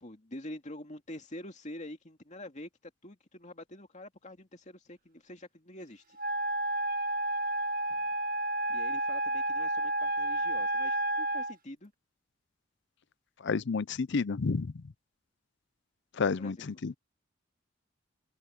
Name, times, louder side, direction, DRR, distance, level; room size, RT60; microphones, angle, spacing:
voice 1, 0.0-2.7 3.0-6.2 8.7-11.9 16.2-16.6, left 1 dB, 40° left, 2.4 m, -46 dB
Wind instrument woodwind instrument, 6.2-11.5, right 2 dB, 45° right, 1.9 m, -31 dB
voice 2, 13.4-14.8 16.2-16.9, left 4 dB, 65° left, 0.6 m, -30 dB
head